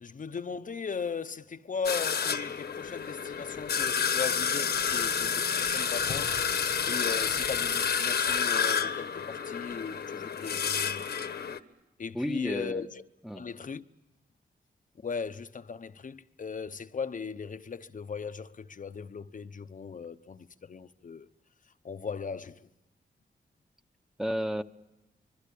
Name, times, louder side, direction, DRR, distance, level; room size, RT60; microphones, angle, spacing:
voice 1, 0.0-6.4 6.8-11.0 12.0-13.0 13.3-13.8 15.0-21.3 21.8-22.7, left 5 dB, 50° left, 0.9 m, -38 dB
sound 1, 1.8-11.6, left 7 dB, 70° left, 1.3 m, -29 dB
voice 2, 12.1-12.9 13.2-13.5 24.2-24.6, equal, ahead, 1.0 m, -32 dB
25.0 x 22.5 x 8.5 m
cardioid pair, 75°, 17 cm